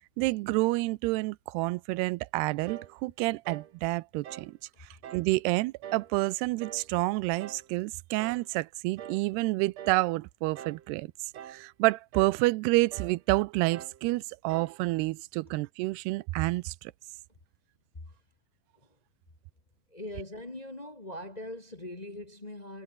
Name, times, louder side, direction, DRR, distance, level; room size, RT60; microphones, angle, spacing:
voice 1, 0.2-4.5 4.8-11.1 11.5-16.9, right 21 dB, 90° right, 2.7 m, -29 dB
sound 1, 2.7-3.0 3.4-3.7 4.2-4.5 5.0-5.3 5.8-6.1 6.6-6.9 7.4-7.7 8.2-8.5 9.0-9.3 9.8-10.1 10.6-10.9 11.3-11.7 12.1-12.4 12.9-13.2 13.7-14.0 14.5-14.8, right 10 dB, 55° right, 2.2 m, -44 dB
voice 2, 19.9-22.8, left 1 dB, 50° left, 0.4 m, -41 dB
omnidirectional pair, 4.6 m